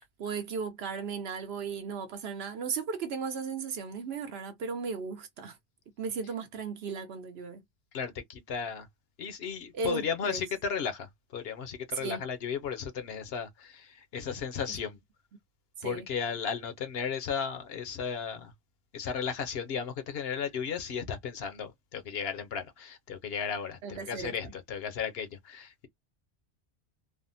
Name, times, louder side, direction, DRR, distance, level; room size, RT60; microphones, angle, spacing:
voice 1, 0.2-5.6 6.0-7.6 9.7-10.4 11.9-12.2 15.8-16.1 23.8-24.5, right 5 dB, 70° right, 0.9 m, -36 dB
voice 2, 7.9-8.9 9.2-15.0 15.8-18.5 18.9-25.9, left 6 dB, 65° left, 0.9 m, -35 dB
3.4 x 2.1 x 2.6 m
omnidirectional pair, 1.1 m